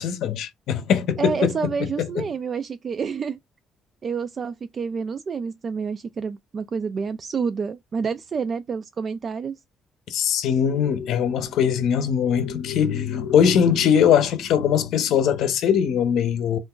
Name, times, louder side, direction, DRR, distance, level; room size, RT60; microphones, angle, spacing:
voice 1, 0.0-1.5 2.0-2.2 10.1-16.6, left 8 dB, 80° left, 0.6 m, -21 dB
voice 2, 1.2-3.4 4.0-9.6, right 5 dB, 45° right, 0.3 m, -28 dB
2.5 x 2.3 x 3.6 m
cardioid pair, 90°, 0 cm